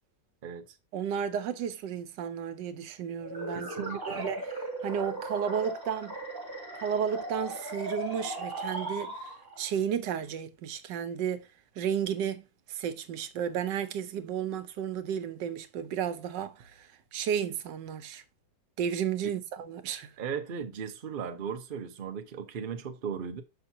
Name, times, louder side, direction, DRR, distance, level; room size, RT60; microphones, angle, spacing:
voice 1, 0.9-4.5 4.8-6.2 6.7-9.3 9.6-11.5 11.8-18.2 18.8-20.1, right 8 dB, 85° right, 1.3 m, -33 dB
sound 1, 3.2-9.7, right 1 dB, 10° right, 2.0 m, -37 dB
voice 2, 3.5-4.3 19.2-19.4 20.2-23.4, right 7 dB, 50° right, 0.6 m, -37 dB
6.5 x 5.6 x 2.7 m
omnidirectional pair, 1.9 m